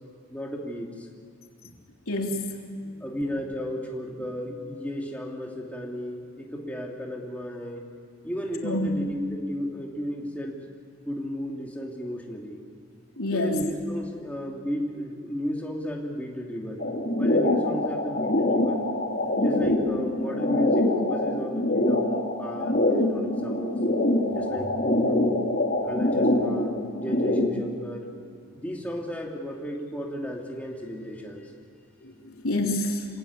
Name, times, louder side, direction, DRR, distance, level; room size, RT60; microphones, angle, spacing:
voice 1, 0.3-1.1 3.0-7.8 8.2-10.7 11.1-12.6 13.3-16.9 17.2-18.8 19.4-23.8 24.3-25.4 25.8-26.7 27.0-28.1 28.5-31.5, equal, 5° left, -2 dB, 2.8 m, -34 dB
voice 2, 2.1-2.6 8.6-8.9 13.2-13.7 32.0-32.1 32.4-33.1, left 1 dB, 80° left, 1 dB, 3.5 m, -27 dB
sound 1, 16.8-27.6, left 1 dB, 45° left, 3.1 m, -25 dB
27.0 x 17.5 x 9.7 m, 2.3 s
head